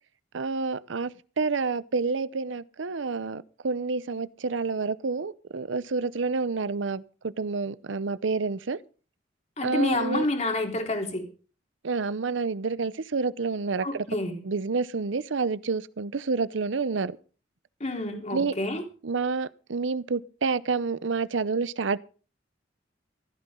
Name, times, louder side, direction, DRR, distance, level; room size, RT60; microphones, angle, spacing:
voice 1, 0.3-1.1 1.4-8.8 9.6-10.3 11.8-14.1 14.4-17.1 18.3-18.5 19.0-22.0, right 4 dB, 80° right, 0.7 m, -28 dB
voice 2, 9.6-11.2 13.8-14.4 17.8-18.8, left 2 dB, 40° left, 3.8 m, -28 dB
16.0 x 14.5 x 3.8 m
head